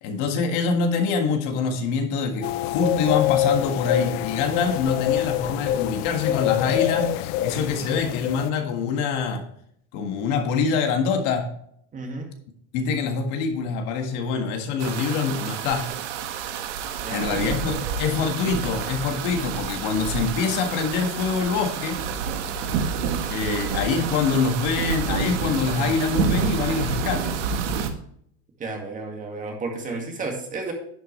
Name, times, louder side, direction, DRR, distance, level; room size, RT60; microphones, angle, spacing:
voice 1, 0.0-9.4 9.9-11.5 12.7-15.9 17.1-22.0 23.3-27.4, left 5 dB, 55° left, 4 dB, 1.8 m, -25 dB
sound 1, 2.4-8.5, left 12 dB, 85° left, 0.6 m, -25 dB
voice 2, 11.9-12.3 17.0-18.0 28.6-30.7, right 3 dB, 20° right, 2 dB, 2.1 m, -32 dB
sound 2, 14.8-27.9, right 6 dB, 75° right, 1.6 m, -28 dB
11.0 x 8.2 x 3.2 m, 0.67 s
cardioid pair, 160°, 36 cm